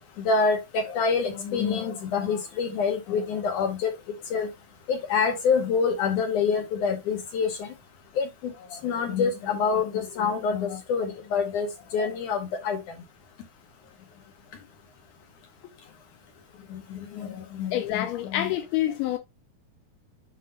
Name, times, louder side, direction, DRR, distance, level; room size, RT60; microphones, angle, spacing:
voice 1, 0.2-3.9 4.3-4.5 4.9-7.6 8.2-8.5 8.8-11.7 11.9-12.8 16.7-18.5, left 5 dB, 65° left, 2.2 m, -26 dB
voice 2, 17.7-19.2, left 13 dB, 85° left, 2.7 m, -27 dB
7.7 x 2.7 x 5.3 m
omnidirectional pair, 4.3 m